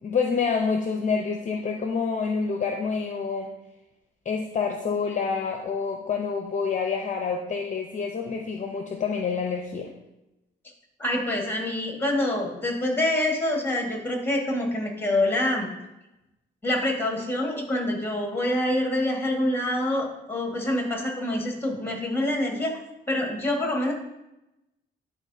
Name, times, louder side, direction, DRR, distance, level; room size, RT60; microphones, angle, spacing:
voice 1, 0.0-3.5 4.3-9.9, left 5 dB, 40° left, 3 dB, 0.7 m, -27 dB
voice 2, 11.0-15.7 16.6-22.8 23.1-23.9, left 1 dB, 10° left, 1 dB, 1.6 m, -26 dB
10.5 x 3.9 x 2.7 m, 0.94 s
cardioid pair, 90°, 20 cm